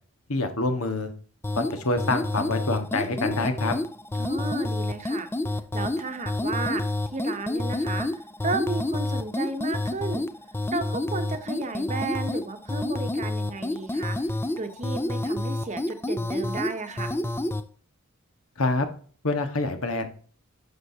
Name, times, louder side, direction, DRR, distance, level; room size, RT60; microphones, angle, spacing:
voice 1, 0.3-1.1 1.5-3.7 18.6-18.9 19.2-20.1, left 2 dB, 80° left, 7 dB, 1.5 m, -26 dB
sound 1, 1.4-17.6, left 2 dB, 10° left, 0.3 m, -29 dB
voice 2, 4.1-5.3 5.7-10.3 10.7-17.1, right 3 dB, 35° right, 8 dB, 0.9 m, -33 dB
11.0 x 6.3 x 2.8 m, 0.43 s
head